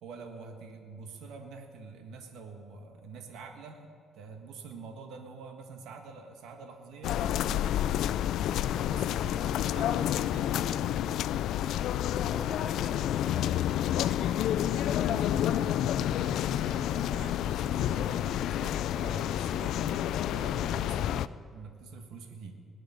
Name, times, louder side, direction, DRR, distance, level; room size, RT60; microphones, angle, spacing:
voice 1, 0.0-7.7 8.3-11.4 14.6-22.5, right 4 dB, 80° right, 3 dB, 1.6 m, -46 dB
sound 1, 7.0-21.3, left 11 dB, 75° left, 0.4 m, -29 dB
voice 2, 12.2-15.3, left 2 dB, 20° left, 3 dB, 1.9 m, -46 dB
20.0 x 6.9 x 9.4 m, 2.2 s
cardioid pair, 110°, 0 cm